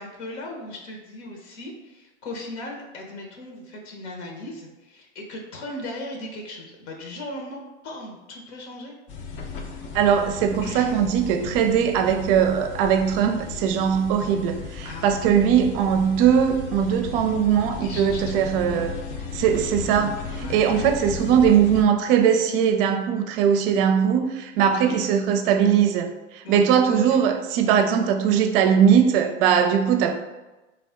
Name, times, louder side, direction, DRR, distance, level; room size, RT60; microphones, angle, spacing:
voice 1, 0.0-9.0 10.6-11.0 11.4-11.5 14.8-15.1 17.8-18.4 20.3-20.9 24.6-25.0 26.4-27.2, left 1 dB, 65° left, 0 dB, 0.9 m, -37 dB
sound 1, 9.1-21.8, left 4 dB, 35° left, 0.5 m, -35 dB
voice 2, 9.9-19.0 19.3-30.1, right 8 dB, 50° right, 7 dB, 0.5 m, -20 dB
3.5 x 2.3 x 3.5 m, 1.1 s
hypercardioid pair, 105°, 36 cm